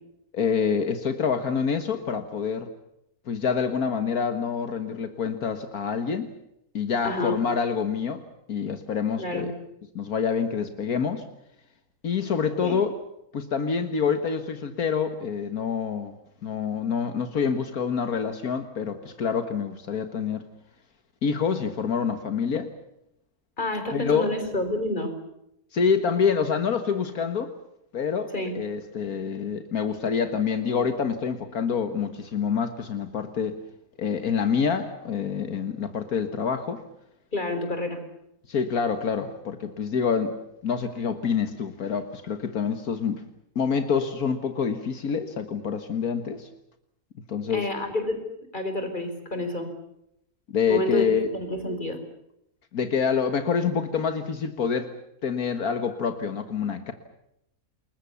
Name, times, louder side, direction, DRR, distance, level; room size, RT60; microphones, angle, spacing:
voice 1, 0.3-2.7 3.3-6.3 6.7-9.5 10.0-11.2 12.0-12.9 13.3-16.1 16.4-20.5 21.2-22.7 23.9-24.3 25.7-27.5 27.9-33.6 34.0-36.8 38.5-40.4 40.6-43.2 43.6-46.5 47.3-47.7 50.5-51.3 52.7-54.9 55.2-56.9, left 6 dB, 80° left, 9 dB, 2.0 m, -27 dB
voice 2, 7.0-7.4 9.2-9.5 12.6-12.8 23.6-25.1 28.3-28.6 37.3-38.0 47.5-48.2 48.5-49.7 50.7-51.1 51.3-52.0, left 2 dB, 30° left, 7 dB, 4.7 m, -29 dB
28.5 x 21.5 x 7.0 m, 0.79 s
omnidirectional pair, 1.5 m